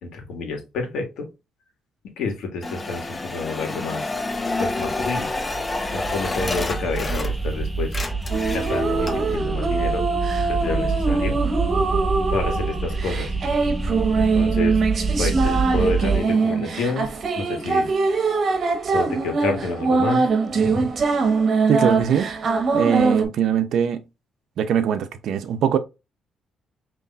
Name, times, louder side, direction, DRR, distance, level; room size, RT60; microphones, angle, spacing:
voice 1, 0.0-1.3 2.2-4.1 4.6-5.3 5.9-7.9 8.5-10.0 10.5-11.4 12.3-13.3 14.1-14.8 15.2-17.1 17.4-17.9 18.9-20.3 20.6-20.9, left 3 dB, 80° left, 1.5 m, -29 dB
sound 1, 2.6-7.6 7.8-9.4, left 2 dB, 25° left, 0.7 m, -29 dB
sound 2, 4.2-16.2, right 4 dB, 10° right, 0.8 m, -27 dB
sound 3, 8.3-23.2, right 4 dB, 50° right, 1.1 m, -22 dB
voice 2, 21.7-22.3 22.7-24.0 24.6-25.8, right 8 dB, 75° right, 0.6 m, -21 dB
5.5 x 3.0 x 2.3 m
cardioid pair, 90°, 0 cm